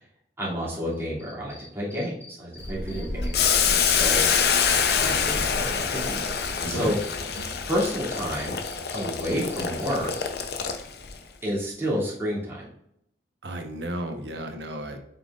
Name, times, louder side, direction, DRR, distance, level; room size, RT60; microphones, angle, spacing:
voice 1, 0.4-4.2 4.9-7.0 7.7-8.6 8.9-10.1 11.4-12.7, equal, 15° right, -8 dB, 2.7 m, -30 dB
Cricket, 0.9-3.7 4.0-7.4 7.8-10.2, left 2 dB, 10° left, 1.7 m, -47 dB
Child speech kid speaking, 2.6-7.9, equal, 85° left, 1.0 m, -35 dB
Boiling, 3.3-11.1, left 7 dB, 65° left, 0.7 m, -25 dB
voice 2, 6.6-6.9 13.4-15.0, right 1 dB, 75° right, 5 dB, 1.1 m, -33 dB
7.4 x 5.9 x 2.5 m, 0.76 s
head